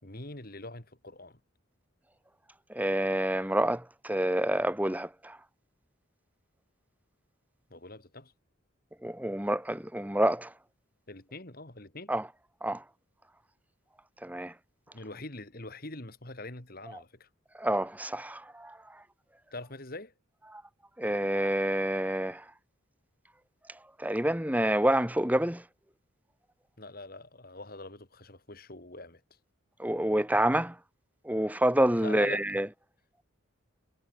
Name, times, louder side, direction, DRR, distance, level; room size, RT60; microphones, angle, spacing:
voice 1, 0.0-1.4 7.7-8.3 11.1-12.1 14.9-17.3 19.5-20.1 26.8-29.2 32.0-32.6, left 2 dB, 45° left, 3.2 m, -44 dB
voice 2, 2.7-5.4 9.0-10.5 12.1-12.3 12.6-12.8 14.2-14.5 17.5-19.0 20.5-20.6 21.0-22.5 23.7-25.6 29.8-30.8 31.2-32.7, right 1 dB, 10° right, 1.6 m, -28 dB
head